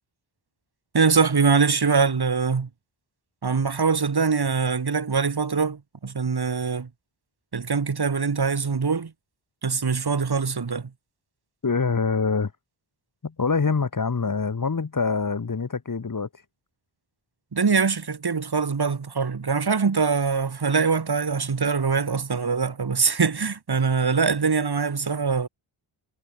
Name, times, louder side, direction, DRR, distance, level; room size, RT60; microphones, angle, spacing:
voice 1, 0.9-2.7 3.4-6.9 7.5-9.1 9.6-10.9 17.5-25.5, right 5 dB, 50° right, 3.4 m, -23 dB
voice 2, 11.6-12.5 13.2-16.3, left 4 dB, 40° left, 2.1 m, -25 dB
wide cardioid pair, 100°, 49 cm